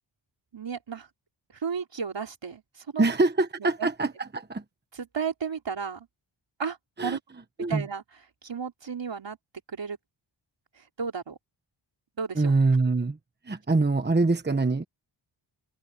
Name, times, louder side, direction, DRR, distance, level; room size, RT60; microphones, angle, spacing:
voice 1, 0.5-1.1 1.5-3.0 3.8-3.9 5.0-6.1 6.6-6.8 7.0-7.2 7.7-8.0 8.4-9.4 9.7-10.0 10.8-11.4 12.2-12.5, right 6 dB, 60° right, 3.8 m, -33 dB
voice 2, 3.0-4.6 7.0-7.2 7.6-7.9 12.3-13.2 13.4-14.8, right 3 dB, 20° right, 1.2 m, -24 dB
wide cardioid pair, 80°, 49 cm